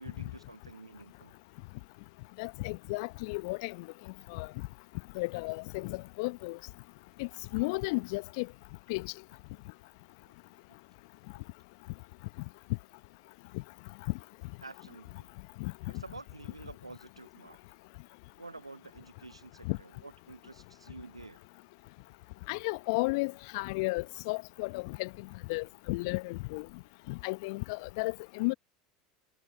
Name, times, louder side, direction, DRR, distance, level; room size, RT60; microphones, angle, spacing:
voice 1, 0.0-1.3 14.6-15.3 15.9-17.6 18.4-21.4, right 3 dB, 85° right, 1.1 m, -49 dB
voice 2, 2.4-3.9 4.3-4.5 5.1-6.6 7.2-8.5 8.9-9.1 15.6-15.7 19.7-19.8 22.5-25.1 25.5-26.7 27.1-28.5, left 26 dB, 60° left, 1.1 m, -33 dB
figure-of-eight pair, 75°, 3 cm